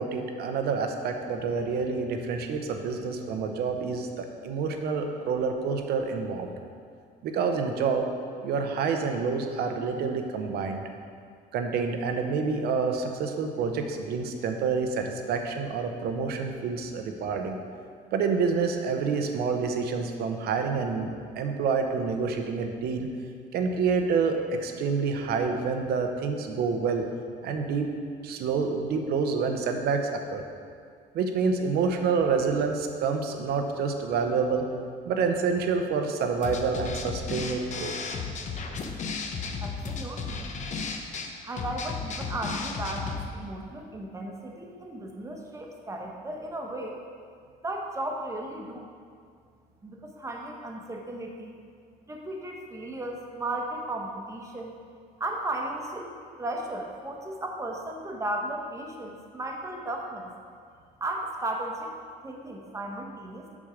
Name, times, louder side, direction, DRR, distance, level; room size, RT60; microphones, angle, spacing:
voice 1, 0.0-6.5 7.2-8.1 8.4-10.8 11.5-17.6 18.1-23.1 23.5-27.1 27.4-27.9 28.2-30.4 31.1-34.7 35.1-37.9, right 5 dB, 70° right, 5 dB, 0.9 m, -28 dB
sound 1, 36.4-43.3, left 5 dB, 45° left, 0.8 m, -34 dB
voice 2, 39.6-40.6 41.4-47.0 47.6-48.9 49.8-51.5 52.1-54.7 55.2-56.1 56.4-60.3 61.0-61.9 62.2-63.6, right 1 dB, 20° right, 1 dB, 1.1 m, -35 dB
7.3 x 6.3 x 5.1 m, 2.2 s
cardioid pair, 110°, 17 cm